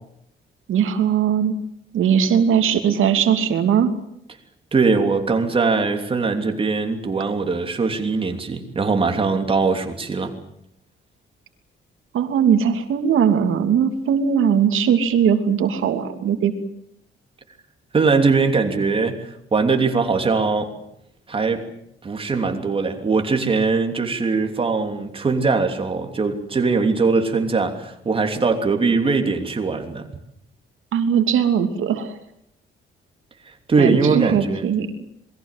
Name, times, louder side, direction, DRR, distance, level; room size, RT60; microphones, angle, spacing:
voice 1, 0.7-1.6 1.9-3.9 12.1-16.5 30.9-32.2 33.8-34.9, right 8 dB, 80° right, 7 dB, 3.0 m, -19 dB
voice 2, 4.7-10.3 17.9-20.7 21.3-21.7 22.0-30.1 33.7-34.6, right 4 dB, 25° right, 5 dB, 3.1 m, -21 dB
27.5 x 22.0 x 7.6 m, 0.75 s
wide cardioid pair, 165°, 21 cm